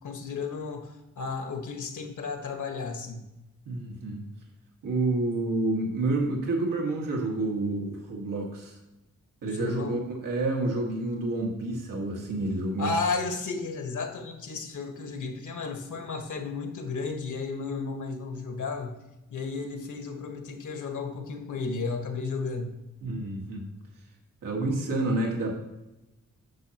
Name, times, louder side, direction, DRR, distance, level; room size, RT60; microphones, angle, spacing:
voice 1, 0.0-3.2 9.4-10.0 12.8-19.0 19.3-22.7, left 4 dB, 70° left, 5 dB, 1.4 m, -33 dB
voice 2, 3.6-4.2 4.8-8.8 9.4-12.9 23.0-23.7 24.4-25.6, right 2 dB, 85° right, 0 dB, 1.9 m, -29 dB
10.0 x 7.1 x 3.0 m, 0.97 s
cardioid pair, 75°, 31 cm